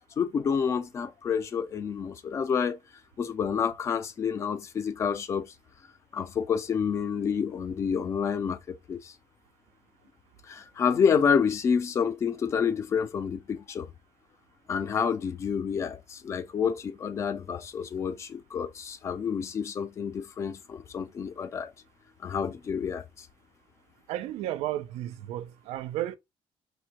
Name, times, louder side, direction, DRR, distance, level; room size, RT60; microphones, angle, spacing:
voice 1, 0.2-2.8 3.2-5.5 6.1-9.1 10.5-13.9 14.7-21.7 22.2-23.3, left 6 dB, 25° left, 0.4 m, -28 dB
voice 2, 24.1-26.2, right 13 dB, 90° right, 0.4 m, -33 dB
5.1 x 2.2 x 2.8 m
cardioid pair, 175°, 10 cm